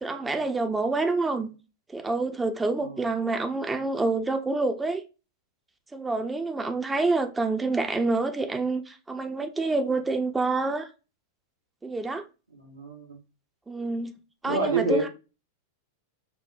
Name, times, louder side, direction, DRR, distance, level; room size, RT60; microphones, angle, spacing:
voice 1, 0.0-1.5 1.9-5.0 5.9-10.9 11.8-12.2 13.7-14.2 14.4-15.1, right 3 dB, 10° right, 0.5 m, -27 dB
voice 2, 12.5-13.2 14.4-15.1, right 3 dB, 85° right, 1.0 m, -28 dB
5.3 x 2.1 x 2.4 m
figure-of-eight pair, 95°, 0 cm